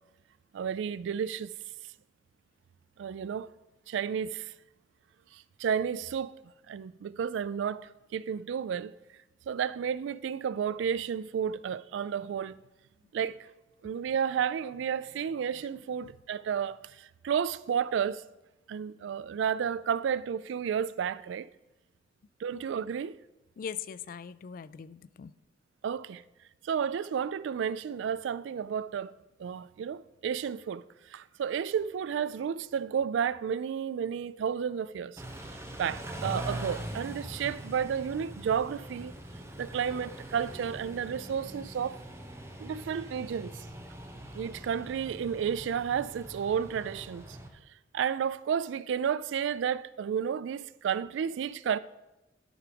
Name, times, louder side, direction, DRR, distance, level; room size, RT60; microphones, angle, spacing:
voice 1, 0.5-1.5 3.0-3.5 3.9-4.5 5.6-6.3 6.7-8.9 9.5-12.6 13.1-13.4 13.8-16.8 17.2-18.2 18.7-21.5 22.4-23.2 25.8-26.2 26.6-29.1 29.4-30.8 31.1-35.2 35.8-39.1 39.6-42.0 42.6-43.6 44.3-47.2 47.9-51.8, right 7 dB, 80° right, 0.3 m, -32 dB
voice 2, 23.6-25.3, left 7 dB, 50° left, 0.3 m, -41 dB
Car / Idling / Accelerating revving vroom, 35.2-47.5, right 1 dB, 15° right, 0.9 m, -42 dB
11.0 x 4.8 x 5.1 m
head